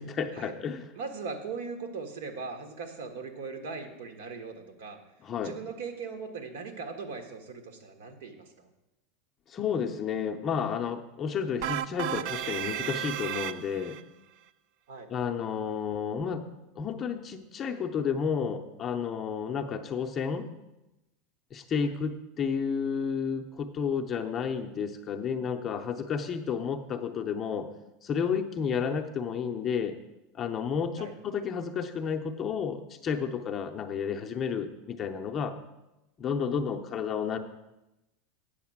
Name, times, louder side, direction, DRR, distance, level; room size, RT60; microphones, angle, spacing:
voice 1, 0.0-0.9 5.2-5.6 9.5-14.0 15.1-16.4 16.8-20.5 21.5-27.7 28.0-30.0 30.3-35.6 36.2-37.4, left 6 dB, 20° left, 4 dB, 0.5 m, -31 dB
voice 2, 0.9-5.0 5.4-8.7 14.9-15.1 21.8-21.9 31.0-31.1, right 4 dB, 85° right, 5 dB, 1.5 m, -39 dB
sound 1, 11.6-14.0, right 11 dB, 45° right, 0.3 m, -33 dB
8.6 x 6.5 x 7.2 m, 0.96 s
supercardioid pair, 180°, 0 cm